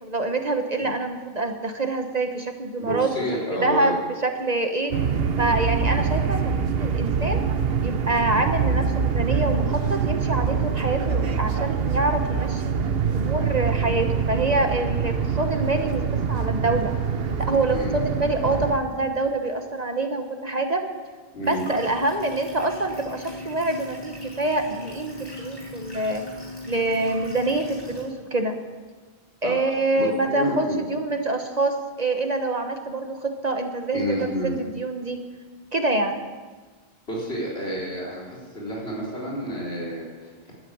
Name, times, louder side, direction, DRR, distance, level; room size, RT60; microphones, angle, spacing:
voice 1, 0.0-3.1 3.6-4.0 4.2-4.9 5.4-7.4 7.8-12.8 13.1-16.9 17.4-20.8 21.4-26.2 26.7-28.6 29.4-35.2 35.7-36.2, right 2 dB, 40° right, 5 dB, 1.1 m, -26 dB
voice 2, 2.8-3.9 17.7-17.9 21.3-21.6 29.4-29.5 30.0-30.8 33.9-34.5 37.1-40.5, equal, 75° left, -5 dB, 4.2 m, -29 dB
sound 1, 4.9-18.8, right 6 dB, 65° right, 1.1 m, -25 dB
sound 2, 21.4-28.0, left 1 dB, 20° left, 6.4 m, -38 dB
12.0 x 11.0 x 8.6 m, 1.4 s
omnidirectional pair, 1.1 m